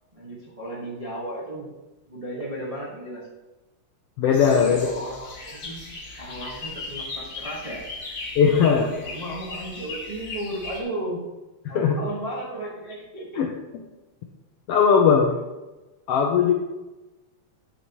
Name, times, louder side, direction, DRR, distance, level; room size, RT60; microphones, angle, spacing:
voice 1, 0.1-1.7 2.1-3.3 4.4-5.8 6.2-7.8 8.6-11.2 11.7-13.4, right 1 dB, 35° right, -5 dB, 0.5 m, -34 dB
voice 2, 4.2-4.9 8.4-8.9 11.6-12.0 13.4-13.5 14.7-15.3 16.1-16.5, left 6 dB, 80° left, 2 dB, 1.4 m, -18 dB
sound 1, 4.3-10.8, left 3 dB, 40° left, 1.2 m, -37 dB
9.4 x 7.0 x 3.0 m, 1.1 s
omnidirectional pair, 3.4 m